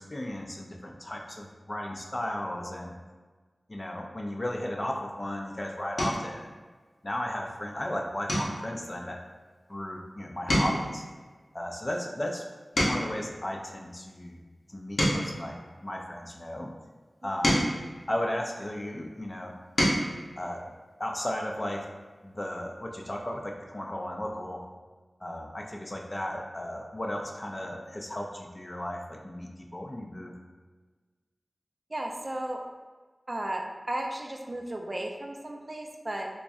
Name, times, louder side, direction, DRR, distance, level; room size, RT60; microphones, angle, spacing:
voice 1, 0.0-2.9 3.7-6.6 7.0-9.2 9.7-11.0 11.5-12.4 12.8-14.4 14.7-16.7 17.2-17.7 18.1-19.5 20.4-20.6 21.0-21.9 22.2-24.6 25.2-30.3, left 1 dB, 30° left, 1 dB, 0.5 m, -35 dB
sound 1, 5.1-5.4 5.9-6.4 6.9-7.2 7.5-7.7 8.2-10.1 10.3-13.3 13.9-16.4 17.0-18.9 19.4-20.1 21.5-21.6 21.9-22.1, equal, 80° left, 0.9 m, -31 dB
voice 2, 31.9-32.6 33.3-36.3, right 1 dB, 40° right, 1 dB, 0.4 m, -34 dB
3.5 x 3.0 x 2.6 m, 1.4 s
wide cardioid pair, 60°, 0 cm